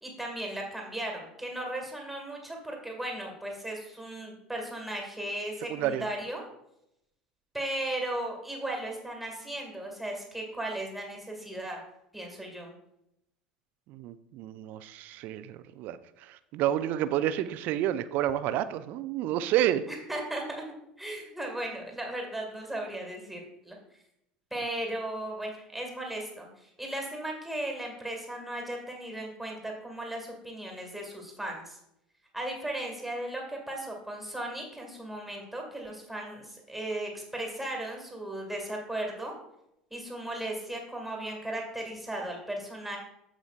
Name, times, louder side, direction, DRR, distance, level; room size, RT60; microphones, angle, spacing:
voice 1, 0.0-6.4 7.5-11.8 12.1-12.7 19.9-20.6 21.0-23.8 24.5-31.8 32.3-39.4 39.9-43.0, right 1 dB, 5° right, 0 dB, 2.1 m, -36 dB
voice 2, 5.7-6.0 13.9-19.9, right 12 dB, 50° right, 13 dB, 0.5 m, -30 dB
15.0 x 5.1 x 2.5 m, 0.83 s
figure-of-eight pair, 70°, 4 cm